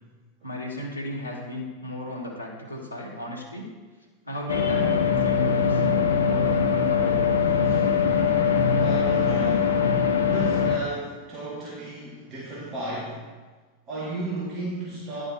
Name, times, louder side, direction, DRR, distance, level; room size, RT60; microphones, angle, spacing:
voice 1, 0.4-3.7 4.3-5.8 6.2-7.3, left 1 dB, 90° right, -5 dB, 1.8 m, -35 dB
sound 1, 4.5-10.8, left 6 dB, 70° left, 0.9 m, -22 dB
voice 2, 8.8-9.9 10.3-13.3 13.9-15.2, right 2 dB, 30° right, -6 dB, 2.3 m, -34 dB
10.5 x 5.5 x 4.5 m, 1.3 s
figure-of-eight pair, 90°, 0 cm